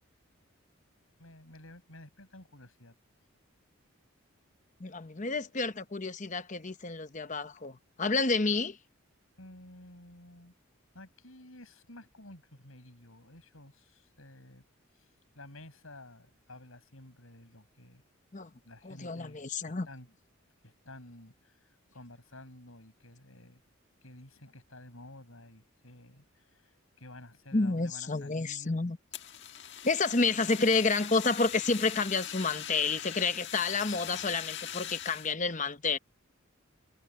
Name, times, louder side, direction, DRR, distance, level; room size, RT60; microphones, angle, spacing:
voice 1, 1.2-2.9 9.4-10.5 10.9-14.6 14.9-15.1 15.3-18.0 18.5-20.1 20.6-23.6 24.0-28.9, left 1 dB, 80° left, 6.8 m, -52 dB
voice 2, 4.8-8.8 18.3-18.5 18.8-19.9 27.5-29.0 29.8-36.0, left 3 dB, 35° left, 1.0 m, -30 dB
Fire, 29.1-35.3, left 10 dB, 55° left, 1.7 m, -41 dB
head